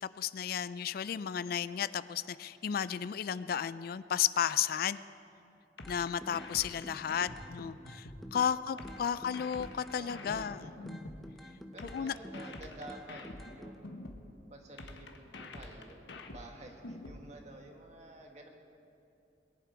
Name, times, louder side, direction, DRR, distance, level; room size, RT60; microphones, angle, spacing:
voice 1, 0.0-5.0 5.9-11.0 11.9-12.1, left 8 dB, 55° left, 16 dB, 0.3 m, -33 dB
sound 1, 5.8-8.3 8.8-11.3 11.8-14.3 14.8-17.3, left 2 dB, 85° left, 1.2 m, -46 dB
sound 2, 5.8-6.5 6.8-8.5 8.8-10.6 10.9-12.6 12.9-13.8, equal, ahead, 0.8 m, -48 dB
voice 2, 6.5-6.9 8.4-9.3 9.9-10.9 11.7-14.1 14.5-18.5, right 1 dB, 40° right, 2 dB, 1.7 m, -51 dB
22.0 x 11.0 x 4.7 m, 2.6 s
head